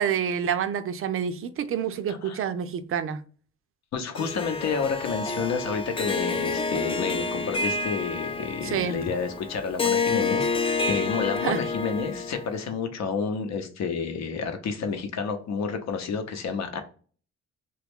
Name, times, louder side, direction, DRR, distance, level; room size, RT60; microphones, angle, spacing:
voice 1, 0.0-3.2 8.6-9.0 11.4-11.6, right 8 dB, 45° right, 0.5 m, -28 dB
voice 2, 2.1-2.4 3.9-16.8, left 5 dB, 65° left, 0.8 m, -30 dB
Harp, 4.2-12.6, left 4 dB, 20° left, 0.4 m, -29 dB
3.1 x 2.3 x 3.5 m
cardioid pair, 90°, 30 cm